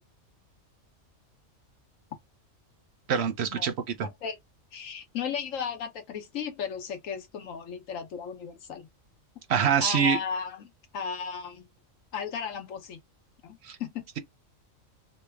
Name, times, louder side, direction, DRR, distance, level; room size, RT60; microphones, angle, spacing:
voice 1, 3.1-4.1 9.5-10.2 13.6-13.8, right 7 dB, 65° right, 0.7 m, -25 dB
voice 2, 4.0-4.4 4.7-8.9 9.8-11.7 12.1-13.0 13.4-14.0, left 7 dB, 75° left, 1.2 m, -35 dB
3.2 x 2.2 x 3.3 m
omnidirectional pair, 1.4 m